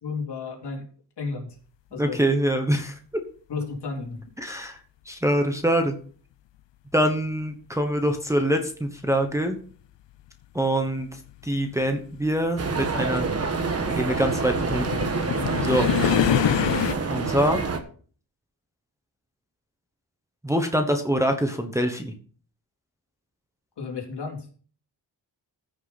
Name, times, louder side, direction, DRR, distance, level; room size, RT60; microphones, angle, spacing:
voice 1, 0.0-0.8 1.2-1.6 1.9-2.2 3.5-4.2 23.8-24.5, left 4 dB, 65° left, -1 dB, 3.6 m, -32 dB
voice 2, 2.0-2.9 4.4-4.8 5.1-5.9 6.9-9.6 10.5-11.1 11.4-13.3 13.9-15.0 15.6-15.9 17.1-17.6 20.4-22.1, right 1 dB, 5° right, 4 dB, 1.1 m, -24 dB
sound 1, 9.7-9.8 10.8-16.9, left 11 dB, 80° left, 0.7 m, -27 dB
sound 2, 12.6-17.8, right 4 dB, 35° right, 1.3 m, -27 dB
15.0 x 6.3 x 4.2 m, 0.43 s
wide cardioid pair, 155°, 43 cm